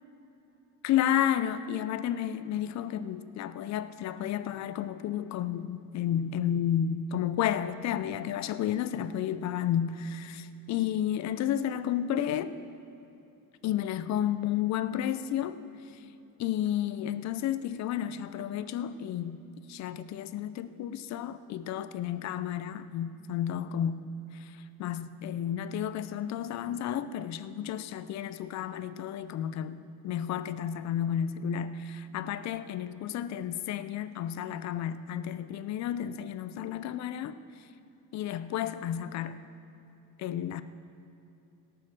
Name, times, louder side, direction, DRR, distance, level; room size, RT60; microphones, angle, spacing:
voice 1, 0.8-12.5 13.6-15.6 16.4-19.4 19.7-24.0 24.4-24.5 24.8-37.4 38.1-39.4 40.2-40.6, left 10 dB, 45° left, 13 dB, 0.5 m, -31 dB
17.5 x 6.7 x 6.2 m, 2.8 s
cardioid pair, 130°, 38 cm